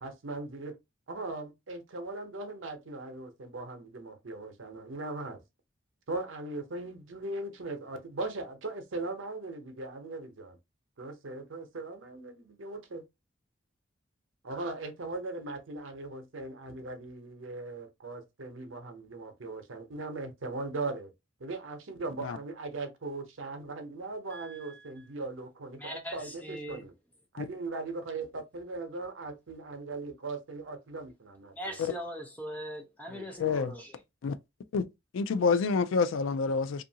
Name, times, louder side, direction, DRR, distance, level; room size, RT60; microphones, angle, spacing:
voice 1, 0.0-0.8 1.1-5.4 6.1-10.6 11.0-13.1 14.4-21.1 21.4-26.9 27.3-31.8 33.1-33.3, right 2 dB, 85° right, 0.7 m, -39 dB
voice 2, 24.3-24.9 25.8-26.9 31.5-34.0, equal, 10° left, 0.6 m, -41 dB
voice 3, 33.4-33.7 34.2-34.4 34.7-34.8 35.1-36.8, left 4 dB, 85° left, 0.4 m, -27 dB
2.7 x 2.5 x 2.7 m
head